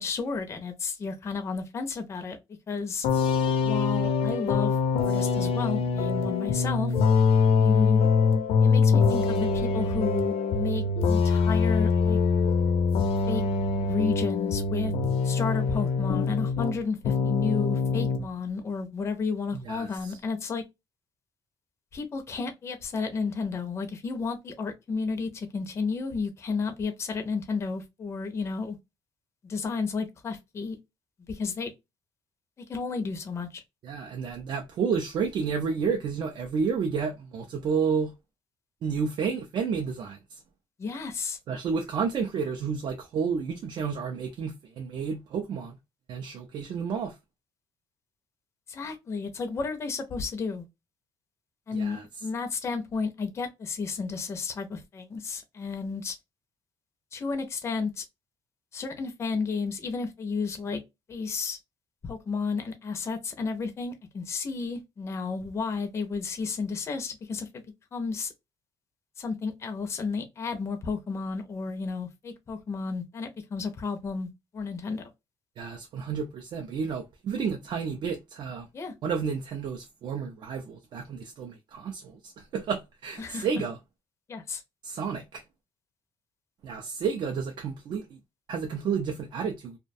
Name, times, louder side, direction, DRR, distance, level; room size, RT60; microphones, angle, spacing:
voice 1, 0.0-2.4 2.7-3.1 3.6-4.8 5.0-6.9 7.6-8.1 8.6-12.2 13.3-13.4 13.8-14.9 15.2-20.6 21.9-28.8 29.4-30.8 31.3-31.7 32.7-33.6 40.8-41.4 48.7-50.7 51.7-56.2 57.1-58.0 58.7-60.8 61.1-61.6 62.0-67.5 67.9-68.3 69.2-75.1 78.7-78.9 83.2-83.6 84.3-84.6, left 4 dB, 30° left, 0.4 m, -32 dB
sound 1, 3.0-16.8 17.0-18.2, left 5 dB, 80° left, 0.5 m, -24 dB
voice 2, 33.8-38.1 38.8-40.2 41.5-45.7 46.1-47.1 51.7-52.0 75.6-78.7 79.0-83.8 84.8-85.4 86.6-88.0 88.5-89.8, right 6 dB, 50° right, 0.4 m, -31 dB
2.3 x 2.1 x 2.5 m
cardioid pair, 155°, 10 cm